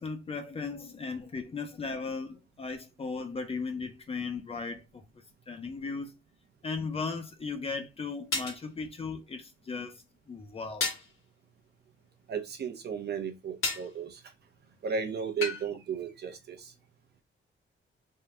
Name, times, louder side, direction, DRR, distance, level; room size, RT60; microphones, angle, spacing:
voice 1, 0.0-5.0 5.5-6.2 6.6-10.9, left 4 dB, 30° left, 0.5 m, -37 dB
sound 1, 8.3-8.6 10.8-11.1 13.6-13.9 15.4-15.6, left 3 dB, 75° left, 1.6 m, -31 dB
voice 2, 12.3-14.2 14.8-16.7, right 6 dB, 50° right, 0.8 m, -34 dB
3.6 x 2.3 x 4.1 m
wide cardioid pair, 180°, 21 cm